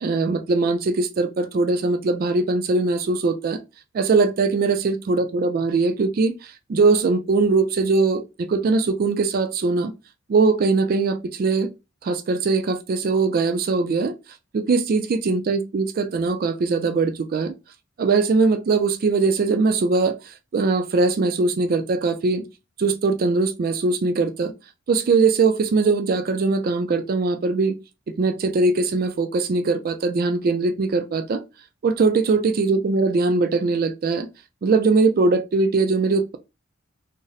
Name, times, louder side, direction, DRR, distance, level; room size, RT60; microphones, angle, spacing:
voice 1, 0.0-3.6 3.9-9.9 10.3-11.7 12.0-14.1 14.5-17.5 18.0-22.4 22.8-24.5 24.9-27.8 28.1-31.4 31.8-34.3 34.6-36.4, right 3 dB, 50° right, 0.3 m, -21 dB
2.5 x 2.0 x 3.9 m
head